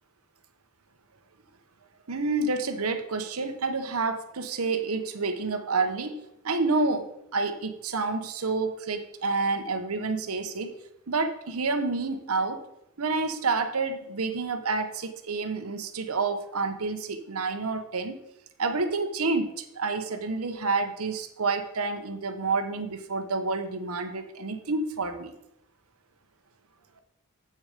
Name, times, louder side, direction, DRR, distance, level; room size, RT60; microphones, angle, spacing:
voice 1, 2.1-6.2 6.4-10.7 11.1-12.6 13.0-18.2 18.6-25.3, right 3 dB, 85° right, 7 dB, 1.0 m, -29 dB
8.0 x 6.5 x 5.0 m, 0.81 s
head